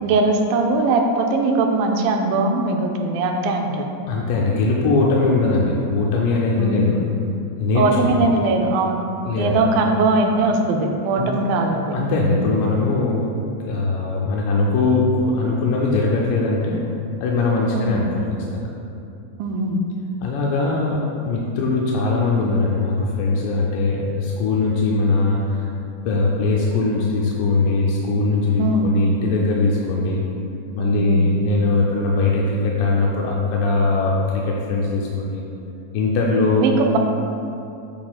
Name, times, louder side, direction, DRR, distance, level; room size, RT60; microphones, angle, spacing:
voice 1, 0.0-3.9 5.3-5.6 6.6-6.9 7.7-9.1 9.4-11.9 12.2-12.4 17.7-18.0 19.4-19.8 28.6-28.9 30.8-31.3 36.6-37.0, right 3 dB, 80° right, 2 dB, 2.2 m, -20 dB
voice 2, 4.1-7.0 7.6-8.3 9.2-9.5 11.2-11.4 11.9-13.3 13.6-16.9 17.2-18.7 20.2-25.7 26.1-30.2 30.8-35.4 35.9-36.7, left 3 dB, 80° left, -3 dB, 2.0 m, -20 dB
8.7 x 5.6 x 2.3 m, 2.7 s
omnidirectional pair, 4.3 m